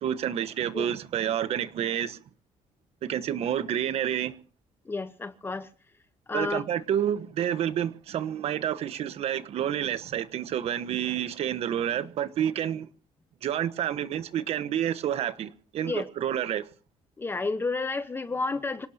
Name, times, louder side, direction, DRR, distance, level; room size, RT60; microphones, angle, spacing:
voice 1, 0.0-2.2 3.0-4.3 6.3-12.9 13.4-16.7, right 10 dB, 65° right, 1.3 m, -29 dB
voice 2, 4.9-5.7 6.3-6.6 15.8-16.1 17.2-18.9, left 3 dB, 20° left, 1.0 m, -31 dB
26.0 x 18.5 x 2.8 m
cardioid pair, 135°, 11 cm